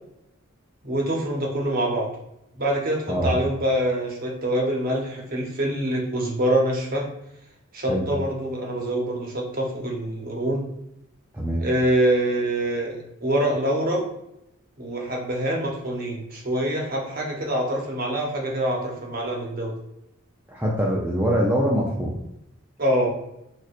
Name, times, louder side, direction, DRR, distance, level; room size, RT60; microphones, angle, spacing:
voice 1, 0.8-2.1 2.5-7.1 7.7-10.6 11.6-14.0 14.8-19.7 22.8-23.1, right 1 dB, 45° right, -1 dB, 0.8 m, -25 dB
voice 2, 11.3-11.7 20.5-22.1, equal, 10° right, -3 dB, 0.4 m, -23 dB
4.2 x 2.4 x 2.4 m, 0.83 s
head